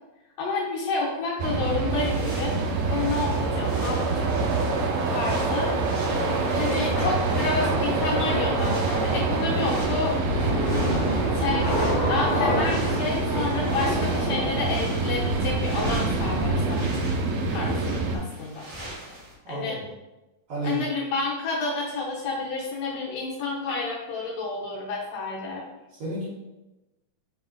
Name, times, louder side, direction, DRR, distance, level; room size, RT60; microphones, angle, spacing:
voice 1, 0.4-4.3 5.1-5.7 6.5-10.2 11.3-16.9 17.5-18.6 19.5-19.8 20.6-25.6, left 3 dB, 75° left, -4 dB, 1.8 m, -30 dB
sound 1, 1.4-18.2, right 3 dB, 90° right, 1.5 m, -26 dB
sound 2, 1.9-10.2 10.5-19.4, right 1 dB, 40° right, 1.8 m, -41 dB
Thunder / Rain, 6.1-16.9, left 1 dB, 40° left, 1.5 m, -30 dB
voice 2, 19.4-19.9 20.5-20.9 25.9-26.3, right 2 dB, 60° right, -8 dB, 2.2 m, -32 dB
4.9 x 3.6 x 2.4 m, 1.0 s
omnidirectional pair, 3.5 m